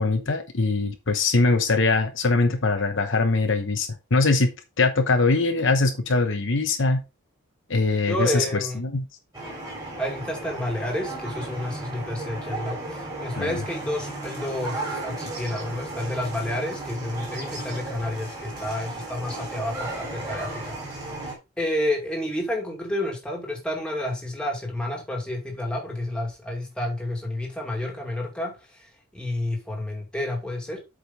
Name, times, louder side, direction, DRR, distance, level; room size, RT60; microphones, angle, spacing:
voice 1, 0.0-4.5 4.8-7.0 7.7-8.4 8.8-9.0 13.4-13.6, left 3 dB, 55° left, 0.9 m, -22 dB
voice 2, 8.1-8.8 10.0-30.8, left 1 dB, 5° left, 2.3 m, -30 dB
sound 1, 9.3-21.3, right 2 dB, 15° right, 3.8 m, -34 dB
8.1 x 5.2 x 3.9 m
head